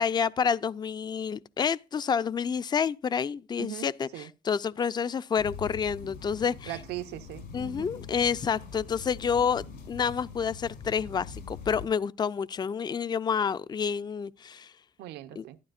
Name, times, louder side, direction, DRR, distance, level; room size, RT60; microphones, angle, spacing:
voice 1, 0.0-6.7 7.5-14.7 15.4-15.5, left 6 dB, 25° left, 0.4 m, -29 dB
voice 2, 3.6-4.3 6.7-7.9 15.0-15.6, right 13 dB, 80° right, 0.7 m, -40 dB
sound 1, 5.4-11.9, left 5 dB, 80° left, 5.9 m, -43 dB
12.5 x 11.5 x 2.5 m
cardioid pair, 110°, 17 cm